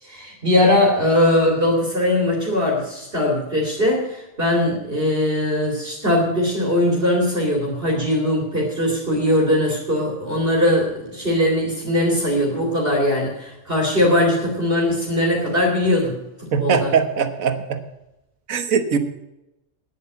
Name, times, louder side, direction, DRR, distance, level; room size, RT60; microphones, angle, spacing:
voice 1, 0.0-16.9, left 1 dB, 45° right, -1 dB, 2.8 m, -20 dB
voice 2, 16.5-17.8 18.5-19.0, right 6 dB, 85° right, 9 dB, 1.6 m, -21 dB
10.0 x 8.1 x 8.3 m, 0.92 s
omnidirectional pair, 1.4 m